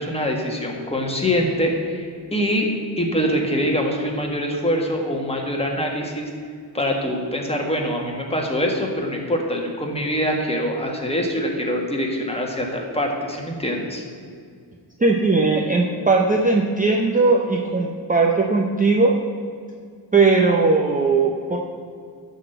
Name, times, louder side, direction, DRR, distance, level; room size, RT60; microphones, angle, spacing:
voice 1, 0.0-2.7 3.0-6.3 6.7-14.0, equal, 15° left, 0 dB, 1.6 m, -24 dB
voice 2, 15.0-19.2 20.1-21.6, right 3 dB, 20° right, -1 dB, 0.8 m, -18 dB
12.5 x 4.2 x 7.8 m, 2.2 s
wide cardioid pair, 125°, 43 cm